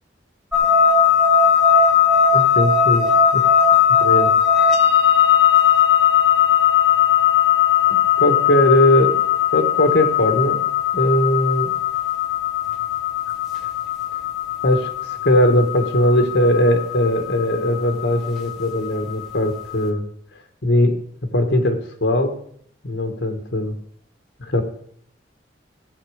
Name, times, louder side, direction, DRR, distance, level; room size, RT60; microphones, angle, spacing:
sound 1, 0.5-19.6, left 8 dB, ahead, 1.6 m, -18 dB
voice 1, 2.3-3.4 3.9-4.3 7.9-9.2 9.5-10.6 10.9-11.7 14.6-14.9 15.2-20.1 20.6-21.0 21.3-22.4 22.8-23.8 24.4-24.6, left 1 dB, 75° left, 5 dB, 1.6 m, -19 dB
16.0 x 7.6 x 5.0 m, 0.63 s
head